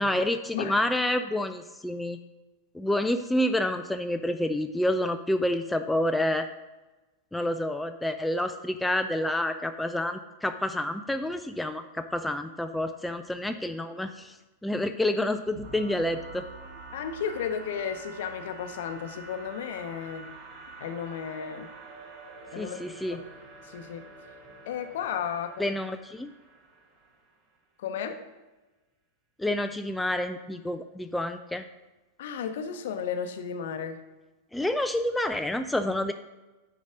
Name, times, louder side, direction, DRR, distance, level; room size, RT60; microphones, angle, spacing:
voice 1, 0.0-2.2 2.7-6.5 7.3-14.3 14.6-16.5 22.6-23.2 25.6-26.3 29.4-31.6 34.5-36.1, left 1 dB, 5° left, 7 dB, 0.4 m, -28 dB
sound 1, 15.6-27.3, right 3 dB, 45° right, 1.6 m, -47 dB
voice 2, 16.9-20.3 20.8-21.7 22.5-23.2 23.6-24.0 24.7-25.7 27.8-28.2 32.2-34.0, left 7 dB, 55° left, 8 dB, 0.7 m, -34 dB
9.2 x 4.1 x 4.9 m, 1.1 s
figure-of-eight pair, 90°, 0 cm